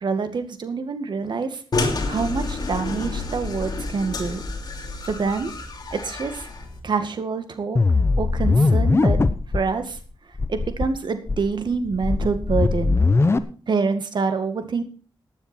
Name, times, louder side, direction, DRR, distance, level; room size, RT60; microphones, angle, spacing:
voice 1, 0.0-1.6 2.1-4.4 5.1-5.5 5.9-6.4 6.8-7.8 8.2-9.2 9.5-10.0 10.5-13.0 13.7-14.8, right 4 dB, 60° right, 8 dB, 2.0 m, -26 dB
sound 1, 1.7-6.8, left 3 dB, 50° left, 3.0 m, -29 dB
sound 2, 7.8-9.6 10.0-10.1 10.4-10.9 11.3-13.4, left 3 dB, 30° left, 0.9 m, -20 dB
15.5 x 9.7 x 4.5 m, 0.38 s
wide cardioid pair, 95°, 9 cm